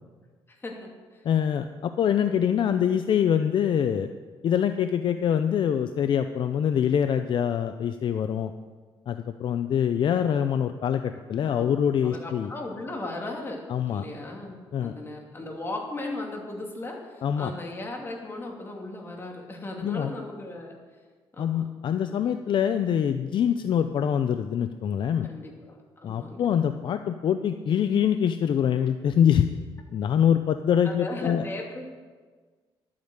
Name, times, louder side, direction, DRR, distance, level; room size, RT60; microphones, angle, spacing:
voice 1, 0.6-1.2 11.4-13.6 13.9-20.8 21.3-21.6 22.1-22.2 25.2-26.5 30.8-31.9, left 2 dB, 25° left, 0 dB, 2.8 m, -37 dB
voice 2, 1.2-4.1 4.4-8.5 9.1-12.5 13.7-14.1 14.7-14.9 17.2-17.5 19.8-20.1 21.4-25.3 26.0-29.5 29.9-31.4, left 8 dB, 55° left, 9 dB, 0.6 m, -24 dB
12.0 x 8.6 x 8.0 m, 1.4 s
cardioid pair, 120°, 10 cm